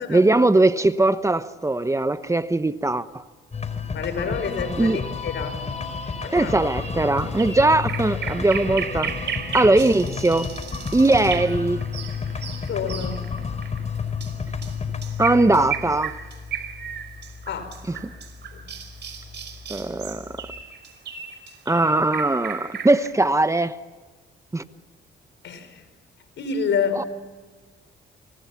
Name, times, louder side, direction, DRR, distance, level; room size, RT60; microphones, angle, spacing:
voice 1, 0.1-3.2 4.8-5.0 6.3-9.1 9.5-10.5 10.9-11.9 15.2-16.2 17.9-18.1 19.7-20.4 21.7-23.8 24.5-24.6 27.0-27.1, right 2 dB, 15° right, 1.0 m, -20 dB
sound 1, 3.5-20.6, left 5 dB, 35° left, 4.7 m, -32 dB
voice 2, 3.9-5.6 6.2-6.5 12.7-13.2 17.5-18.0 18.5-18.6 25.4-25.8 26.4-27.1, left 6 dB, 65° left, 5.2 m, -28 dB
sound 2, 6.7-23.1, right 8 dB, 60° right, 5.1 m, -35 dB
29.0 x 24.5 x 5.9 m
cardioid pair, 90°, 20 cm